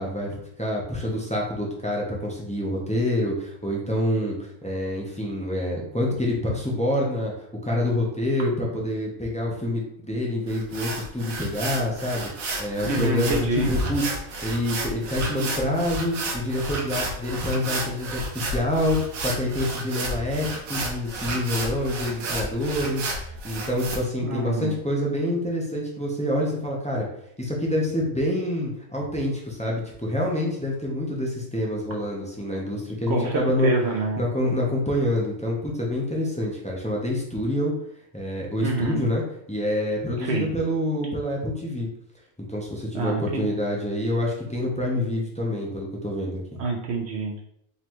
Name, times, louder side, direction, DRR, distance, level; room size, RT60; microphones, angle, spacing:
voice 1, 0.0-7.3 7.6-27.1 27.4-33.7 34.2-37.7 38.1-39.2 39.5-41.9 42.5-46.6, left 1 dB, 10° left, -3 dB, 0.4 m, -27 dB
sound 1, 10.5-24.0, right 2 dB, 85° right, 1.2 m, -32 dB
voice 2, 12.8-13.7 24.2-24.8 33.1-34.2 38.6-39.0 40.2-40.5 42.9-43.5 46.6-47.4, right 3 dB, 65° right, 0 dB, 0.7 m, -27 dB
4.0 x 3.1 x 3.0 m, 0.72 s
omnidirectional pair, 1.4 m